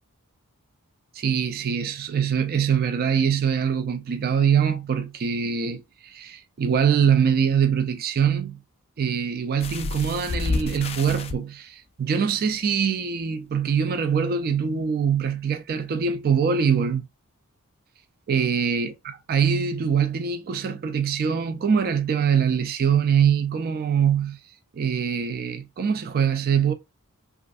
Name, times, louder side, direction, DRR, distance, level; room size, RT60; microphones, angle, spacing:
voice 1, 1.1-8.6 9.0-17.1 18.3-24.4 24.7-26.7, right 7 dB, 45° right, 0.4 m, -23 dB
sound 1, 9.6-11.4 12.3-12.4 12.8-12.9, left 3 dB, 25° left, 0.3 m, -29 dB
3.1 x 2.4 x 2.5 m
head